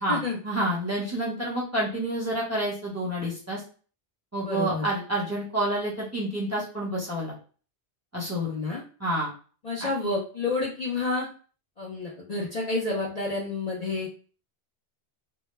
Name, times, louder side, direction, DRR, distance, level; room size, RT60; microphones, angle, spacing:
voice 1, 0.0-3.6 4.3-7.3 8.1-8.5 9.0-9.3, right 1 dB, 15° right, -5 dB, 0.8 m, -28 dB
voice 2, 4.4-4.9 8.4-8.8 9.6-11.3 11.8-14.1, left 3 dB, 45° left, -3 dB, 0.6 m, -29 dB
2.1 x 2.1 x 3.1 m, 0.39 s
omnidirectional pair, 1.1 m